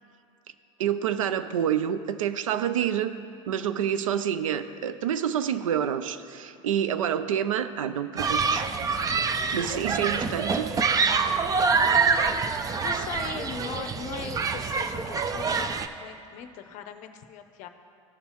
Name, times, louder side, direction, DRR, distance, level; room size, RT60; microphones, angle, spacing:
voice 1, 0.8-3.1 3.5-8.7 9.5-10.7, right 9 dB, 85° right, 12 dB, 0.5 m, -28 dB
Human group actions, 8.2-15.9, right 5 dB, 20° right, 0.4 m, -26 dB
voice 2, 12.8-15.7 16.0-17.7, left 8 dB, 50° left, 8 dB, 0.6 m, -39 dB
14.0 x 5.5 x 2.9 m, 2.8 s
hypercardioid pair, 95°, 17 cm